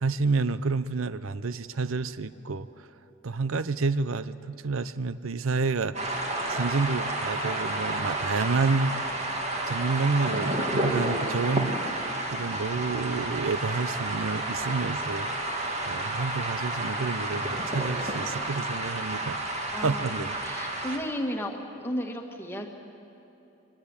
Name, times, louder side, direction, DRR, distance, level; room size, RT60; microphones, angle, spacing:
voice 1, 0.0-2.7 3.2-9.0 9.7-11.7 12.3-15.3 15.9-19.4 19.7-20.3, right 4 dB, 85° right, 14 dB, 0.6 m, -29 dB
sound 1, 5.9-21.0, right 1 dB, 30° right, 2.2 m, -31 dB
voice 2, 19.7-22.7, equal, 10° left, 2 dB, 1.8 m, -34 dB
23.0 x 17.0 x 9.7 m, 2.8 s
head